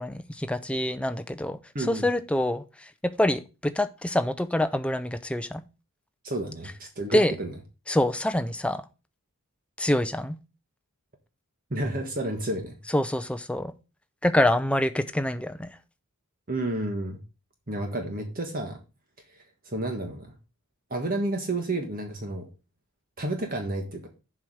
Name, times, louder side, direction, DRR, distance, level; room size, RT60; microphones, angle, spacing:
voice 1, 0.0-1.6 1.9-2.6 3.0-5.6 7.1-7.3 7.9-8.8 9.8-10.4 12.9-13.7 14.2-15.7, left 1 dB, 5° left, 0.5 m, -25 dB
voice 2, 1.7-2.1 6.2-7.5 11.7-12.8 16.5-17.2 17.7-18.8 19.6-20.3 20.9-22.5 23.2-24.1, right 2 dB, 40° right, 1.4 m, -30 dB
7.5 x 4.9 x 6.2 m
head